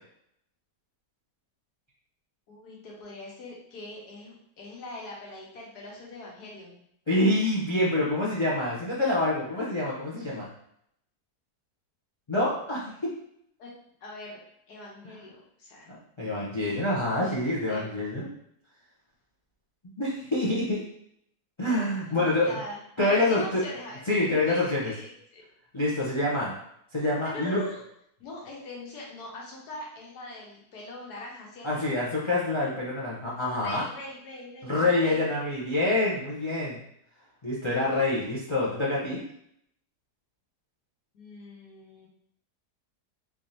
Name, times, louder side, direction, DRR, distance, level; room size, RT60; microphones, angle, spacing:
voice 1, 2.5-6.8 13.6-13.7 14.0-14.4 14.7-15.9 17.1-18.0 22.1-25.4 27.2-27.8 28.2-31.9 33.5-35.3 41.1-42.1, left 2 dB, 80° left, -2 dB, 1.5 m, -42 dB
voice 2, 7.1-10.5 12.3-13.1 15.9-18.3 20.0-20.8 21.6-22.6 23.0-23.6 24.1-24.9 25.7-26.6 26.9-27.6 31.6-33.8 34.6-36.8 37.4-39.2, left 2 dB, 50° left, -5 dB, 0.3 m, -26 dB
3.6 x 3.5 x 2.7 m, 0.73 s
omnidirectional pair, 1.7 m